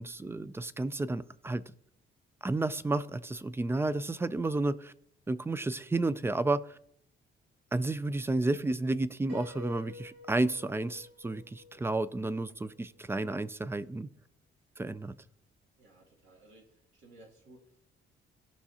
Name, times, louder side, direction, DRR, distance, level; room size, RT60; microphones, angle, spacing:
voice 1, 0.0-1.6 2.4-4.9 5.3-6.8 7.7-14.1 14.8-15.1, right 2 dB, 10° right, 0.3 m, -31 dB
Piano, 9.3-13.0, left 4 dB, 60° right, 2.8 m, -50 dB
voice 2, 15.8-17.8, right 1 dB, 85° right, 2.6 m, -58 dB
16.0 x 5.9 x 2.8 m
cardioid pair, 110°, 19 cm